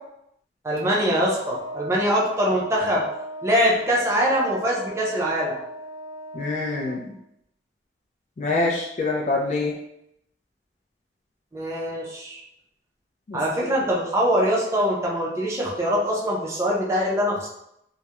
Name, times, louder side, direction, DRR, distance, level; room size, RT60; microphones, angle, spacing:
voice 1, 0.6-3.1 3.4-5.6 11.5-12.4 13.3-17.5, equal, 15° right, -4 dB, 0.5 m, -23 dB
Wind instrument woodwind instrument, 1.3-7.1, right 1 dB, 75° right, 0.4 m, -37 dB
voice 2, 6.3-7.1 8.4-9.7 13.3-13.4, left 3 dB, 40° left, -3 dB, 0.4 m, -25 dB
2.3 x 2.1 x 2.8 m, 0.78 s
head